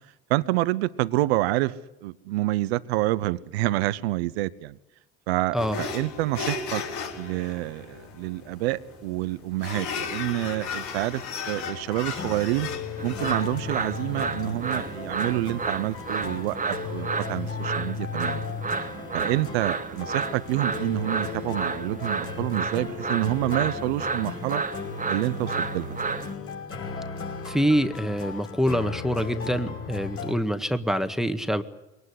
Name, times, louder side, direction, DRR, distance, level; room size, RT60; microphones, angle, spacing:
voice 1, 0.3-4.8 5.3-6.8 7.2-12.7 13.0-18.5 19.1-24.6 25.1-26.0, right 17 dB, 85° right, 17 dB, 0.9 m, -28 dB
sound 1, 5.6-16.4, left 5 dB, 70° left, 4.7 m, -36 dB
sound 2, 11.5-30.3, left 5 dB, 45° left, 5.6 m, -36 dB
sound 3, 13.0-26.3, right 4 dB, 25° right, 1.7 m, -32 dB
voice 2, 27.4-31.6, equal, ahead, 8 dB, 1.7 m, -25 dB
22.5 x 19.0 x 10.0 m, 0.93 s
hypercardioid pair, 70°, 30 cm